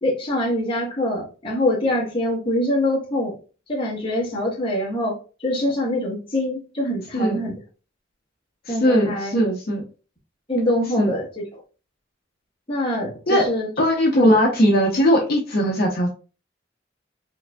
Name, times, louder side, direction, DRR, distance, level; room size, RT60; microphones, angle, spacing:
voice 1, 0.0-3.4 3.7-7.5 8.7-9.3 10.5-11.6 12.7-13.7 14.1-14.3, left 1 dB, 30° left, 1.1 m, -24 dB
voice 2, 8.7-9.8 11.0-11.1 13.3-13.5 13.8-16.1, equal, 55° left, 0.7 m, -19 dB
4.6 x 2.6 x 2.2 m
head